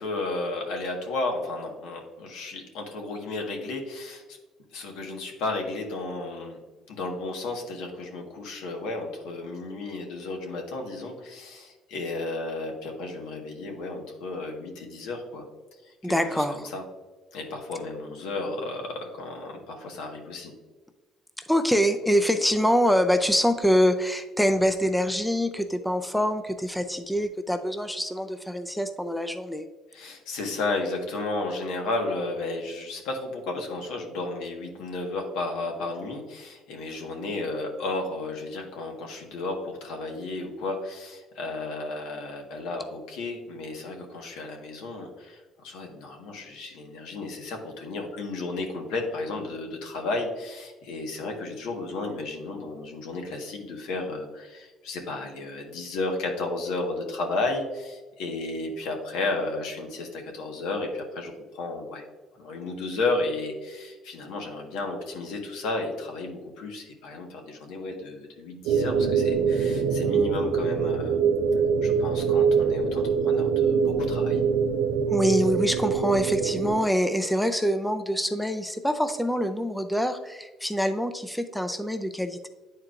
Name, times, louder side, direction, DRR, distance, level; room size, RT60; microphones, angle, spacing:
voice 1, 0.0-4.2 4.7-6.6 6.9-15.4 15.8-16.8 17.3-20.5 29.9-62.0 62.4-71.2 71.8-74.4, left 2 dB, 85° left, 2 dB, 1.4 m, -33 dB
voice 2, 16.0-16.7 21.4-29.6 75.1-82.5, equal, ahead, 7 dB, 0.4 m, -25 dB
sound 1, 68.7-76.8, right 6 dB, 90° right, 0.6 m, -24 dB
9.8 x 4.5 x 2.5 m, 1.3 s
cardioid pair, 110°, 0 cm